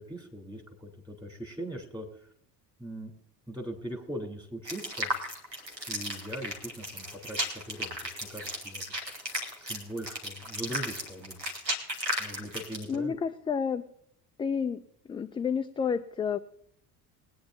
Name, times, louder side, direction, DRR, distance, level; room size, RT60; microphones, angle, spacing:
voice 1, 0.0-2.3 2.8-3.1 3.5-5.1 5.9-8.8 9.6-11.4 12.2-13.2, right 1 dB, 10° right, 1 dB, 3.3 m, -40 dB
sound 1, 4.7-13.0, equal, 90° right, 1.8 m, -35 dB
voice 2, 12.9-13.9 14.4-14.8 15.1-16.4, left 6 dB, 10° left, 7 dB, 0.4 m, -30 dB
21.5 x 9.4 x 2.7 m, 0.71 s
figure-of-eight pair, 60°, 49 cm